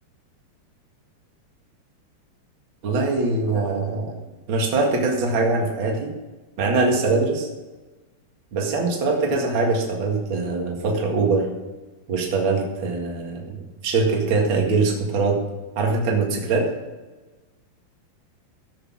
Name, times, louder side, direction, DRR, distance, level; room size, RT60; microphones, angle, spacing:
voice 1, 2.8-4.2 4.5-6.1 6.6-7.5 8.5-11.5 12.1-15.4 15.8-16.7, right 3 dB, 40° right, 1 dB, 2.0 m, -22 dB
15.0 x 6.6 x 6.1 m, 1.2 s
omnidirectional pair, 4.5 m